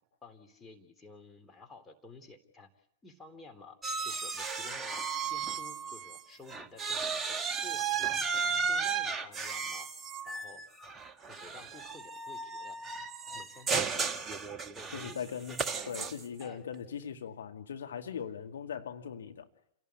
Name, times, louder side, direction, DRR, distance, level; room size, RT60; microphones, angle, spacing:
voice 1, 0.2-3.8 4.1-8.2 8.7-9.9 10.3-10.6 11.3-12.8 13.3-14.0 14.7-17.1, left 3 dB, 10° left, 5 dB, 3.5 m, -53 dB
sound 1, 3.8-6.2 6.5-16.4, right 5 dB, 15° right, 1.6 m, -34 dB
voice 2, 14.9-15.6 15.9-19.5, left 7 dB, 65° left, 5 dB, 2.2 m, -40 dB
30.0 x 18.0 x 8.5 m, 0.79 s
figure-of-eight pair, 105°, 0 cm